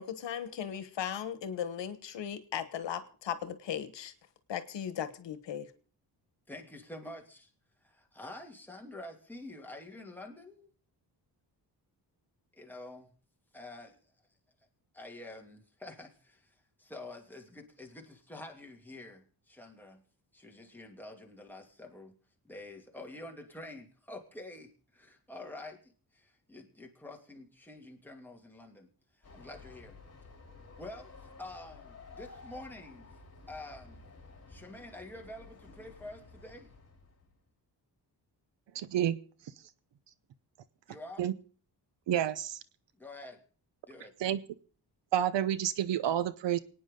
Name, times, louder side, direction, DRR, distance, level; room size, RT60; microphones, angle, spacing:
voice 1, 0.0-4.1 4.5-5.7, left 9 dB, 85° left, 12 dB, 1.3 m, -37 dB
voice 2, 6.5-7.5 7.8-10.7 12.5-13.1 13.5-14.0 14.9-20.0 20.3-22.2 22.4-30.0 30.8-33.2 33.5-34.0 34.5-36.7 40.9-41.2 43.0-43.4 43.9-44.1, left 2 dB, 5° left, 1 dB, 2.6 m, -48 dB
Train, 29.2-37.4, left 3 dB, 35° left, 4.0 m, -53 dB
voice 3, 38.7-39.2 41.2-41.3 42.1-42.6 44.2-44.4 45.1-46.6, right 10 dB, 90° right, 16 dB, 0.9 m, -29 dB
28.0 x 9.5 x 3.8 m, 0.42 s
cardioid pair, 100°, 42 cm